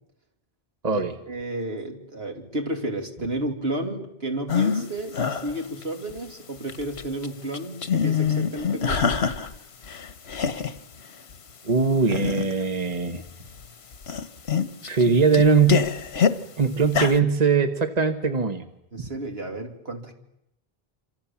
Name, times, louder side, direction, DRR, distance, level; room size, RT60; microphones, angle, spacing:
voice 1, 0.9-9.2 18.9-20.1, right 1 dB, 75° right, 3 dB, 3.1 m, -32 dB
sound 1, 4.5-4.9 5.1-6.2 6.6-7.3 7.5-9.6 9.8-10.8 11.3-11.4 12.0-12.6 13.3-13.7 13.9-16.4 16.8-17.2, left 7 dB, 85° left, 1.4 m, -25 dB
voice 2, 11.6-13.2 14.8-15.9 16.6-18.6, right 5 dB, 40° right, 7 dB, 1.4 m, -21 dB
27.0 x 26.5 x 7.2 m, 0.85 s
omnidirectional pair, 1.1 m